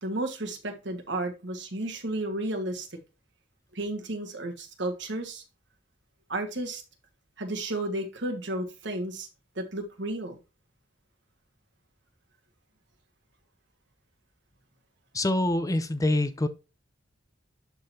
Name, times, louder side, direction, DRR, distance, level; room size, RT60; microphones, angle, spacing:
voice 1, 0.0-3.0 3.7-5.4 6.3-6.8 7.4-9.3 9.5-10.4, right 1 dB, 70° right, 1.6 m, -33 dB
voice 2, 15.1-16.5, left 1 dB, 20° left, 0.6 m, -25 dB
11.5 x 3.9 x 2.7 m
head